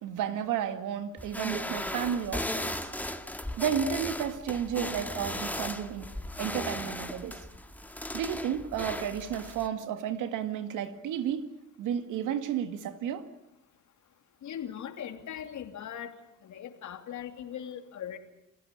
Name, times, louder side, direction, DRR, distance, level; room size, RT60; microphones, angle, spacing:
voice 1, 0.0-2.9 3.6-6.1 6.4-7.4 8.1-11.5 11.8-13.3, right 9 dB, 90° right, 2.2 m, -32 dB
sound 1, 1.2-9.7, left 1 dB, 5° left, 1.9 m, -37 dB
voice 2, 14.4-16.1 16.4-18.2, left 9 dB, 70° left, 2.9 m, -39 dB
29.0 x 16.0 x 8.8 m
cardioid pair, 90°, 30 cm